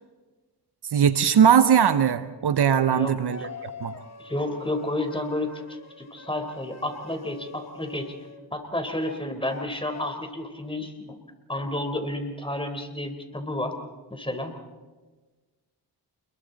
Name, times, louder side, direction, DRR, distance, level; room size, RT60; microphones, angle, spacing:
voice 1, 0.9-3.4 3.8-3.9, right 8 dB, 65° right, 12 dB, 1.0 m, -19 dB
voice 2, 2.9-3.5 4.2-8.1 8.5-11.2 11.5-13.7 14.1-14.5, left 1 dB, 10° left, 6 dB, 4.1 m, -31 dB
sound 1, 3.3-8.4 9.0-9.7 9.9-10.1, left 4 dB, 40° left, 1.8 m, -44 dB
28.5 x 22.0 x 4.1 m, 1.3 s
cardioid pair, 55°, 42 cm